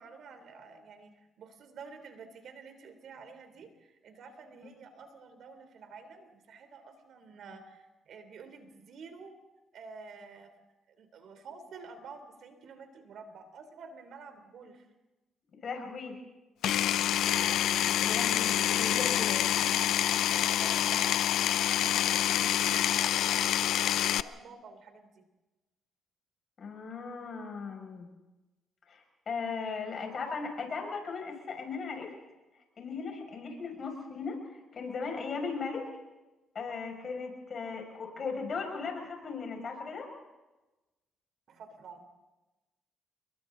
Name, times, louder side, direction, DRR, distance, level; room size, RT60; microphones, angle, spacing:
voice 1, 0.0-9.4 9.7-10.5 11.0-14.9 20.3-22.2 22.7-25.1 41.5-42.0, right 4 dB, 65° right, 8 dB, 3.3 m, -50 dB
voice 2, 15.6-16.2 18.0-19.4 26.6-28.1 28.9-32.1 32.8-35.9 36.5-40.1, left 5 dB, 50° left, 2 dB, 6.2 m, -37 dB
Power tool, 16.6-24.2, left 11 dB, 80° left, 0.6 m, -27 dB
30.0 x 22.0 x 3.9 m, 1.1 s
cardioid pair, 90°, 0 cm